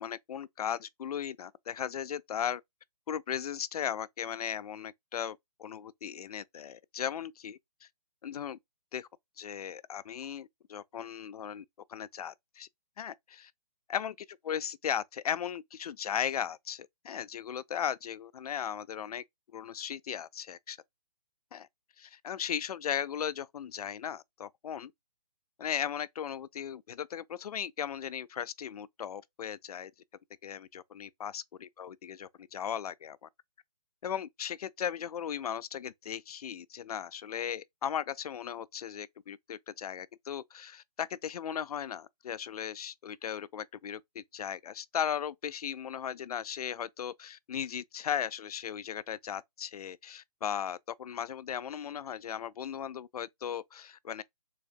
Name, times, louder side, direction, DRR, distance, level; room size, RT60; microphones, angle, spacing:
voice 1, 0.0-2.6 3.1-7.9 8.2-8.6 8.9-9.1 9.4-11.6 11.9-12.7 13.0-13.5 13.9-14.1 14.4-19.2 19.5-20.8 21.5-21.7 22.0-24.9 25.6-29.9 30.4-33.3 34.0-54.2, left 9 dB, 65° left, 0.4 m, -37 dB
4.0 x 2.7 x 2.5 m
figure-of-eight pair, 140°, 21 cm